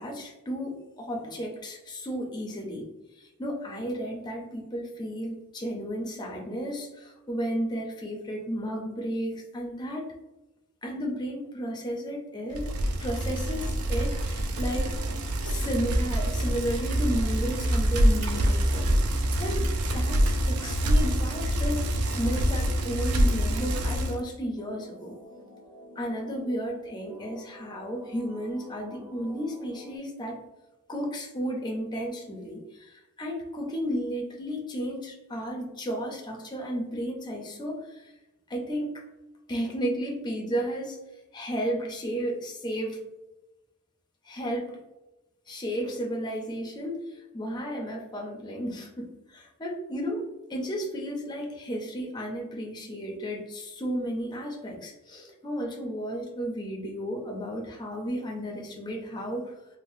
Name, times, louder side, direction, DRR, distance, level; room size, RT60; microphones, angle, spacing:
voice 1, 0.0-2.9 3.2-10.1 10.8-12.7 13.0-15.0 15.4-25.1 26.0-30.4 30.9-38.1 38.5-39.0 39.5-41.0 41.3-43.0 44.2-44.8 45.5-59.5, equal, 20° left, 0 dB, 0.5 m, -33 dB
Bicycle, 12.5-24.2, right 1 dB, 70° right, 0.4 m, -26 dB
sound 1, 24.6-30.0, left 1 dB, 15° right, 0.7 m, -49 dB
3.5 x 2.0 x 2.6 m, 0.98 s
head